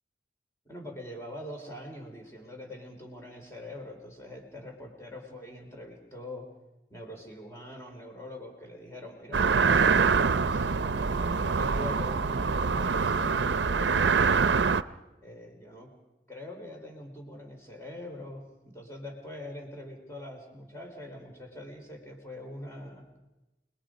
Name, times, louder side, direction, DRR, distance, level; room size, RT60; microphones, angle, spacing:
voice 1, 0.7-6.5 6.9-9.5 10.2-14.1 15.2-15.9 16.3-23.1, left 1 dB, 15° left, 2 dB, 4.0 m, -43 dB
sound 1, 9.3-14.8, right 5 dB, 80° right, 0.6 m, -25 dB
29.5 x 21.0 x 5.2 m, 1.0 s
head